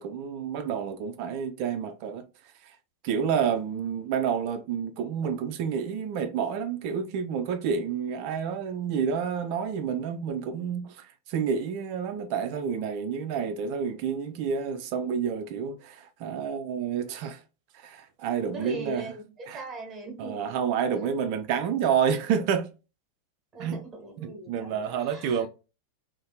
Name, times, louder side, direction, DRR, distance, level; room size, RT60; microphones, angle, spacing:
voice 1, 0.0-2.2 2.6-2.8 3.0-17.4 17.7-19.0 19.5-19.6 20.2-22.7 23.6-23.8 24.2-25.5, right 7 dB, 45° right, 0.3 m, -29 dB
voice 2, 18.5-20.5 23.5-25.4, right 2 dB, 25° right, 1.1 m, -40 dB
2.6 x 2.5 x 2.2 m
figure-of-eight pair, 90°, 0 cm